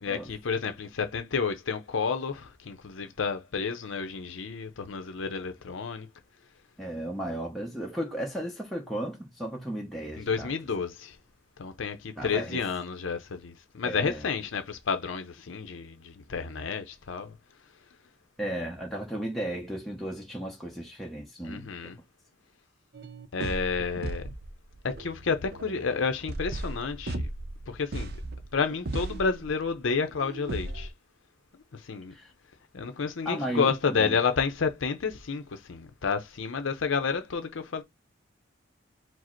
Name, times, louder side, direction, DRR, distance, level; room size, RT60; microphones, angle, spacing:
voice 1, 0.0-6.1 10.2-11.1 11.6-17.3 21.4-22.0 23.3-24.3 24.8-27.3 27.7-28.1 28.5-30.9 31.7-32.1 32.7-37.8, left 5 dB, 75° left, 0.6 m, -30 dB
voice 2, 6.8-10.5 12.2-12.6 13.8-14.2 18.4-21.9 32.1-32.3 33.2-34.2, right 1 dB, ahead, 0.7 m, -35 dB
sound 1, 22.9-30.9, right 2 dB, 50° right, 0.5 m, -37 dB
4.8 x 2.0 x 4.4 m
head